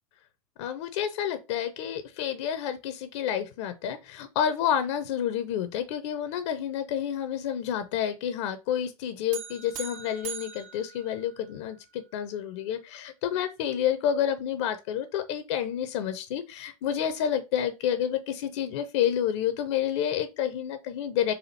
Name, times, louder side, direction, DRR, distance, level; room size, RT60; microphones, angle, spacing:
voice 1, 0.6-21.3, left 9 dB, 50° left, 0.6 m, -29 dB
sound 1, 9.3-11.8, right 7 dB, 55° right, 0.8 m, -41 dB
4.2 x 2.6 x 4.2 m
figure-of-eight pair, 85°, 19 cm